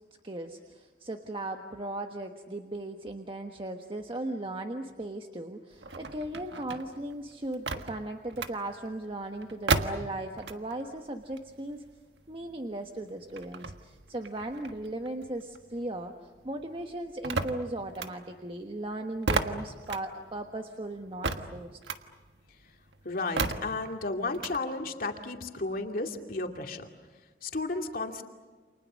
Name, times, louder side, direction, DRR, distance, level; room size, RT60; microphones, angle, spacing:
voice 1, 0.2-11.8 12.3-16.1 16.4-21.8, right 1 dB, 30° right, 4 dB, 1.3 m, -37 dB
sound 1, 5.7-10.9 11.2-16.0 16.3-24.6, right 3 dB, 90° right, 1.5 m, -35 dB
voice 2, 23.0-26.9 27.4-28.2, left 3 dB, 55° left, 4 dB, 2.5 m, -33 dB
29.5 x 28.0 x 6.4 m, 1.4 s
head